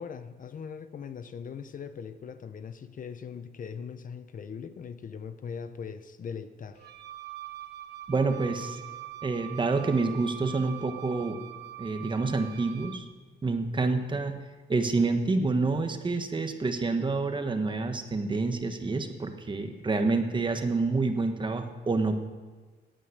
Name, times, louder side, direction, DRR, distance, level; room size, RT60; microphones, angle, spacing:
voice 1, 0.0-6.9, left 6 dB, 50° left, 11 dB, 0.7 m, -40 dB
Wind instrument woodwind instrument, 6.7-13.1, right 14 dB, 70° right, 0.9 m, -43 dB
voice 2, 8.1-8.8 9.2-11.4 11.8-13.0 13.4-14.4 14.7-22.2, right 3 dB, 25° right, 6 dB, 1.3 m, -28 dB
18.0 x 9.0 x 6.5 m, 1.4 s
cardioid pair, 130°, 18 cm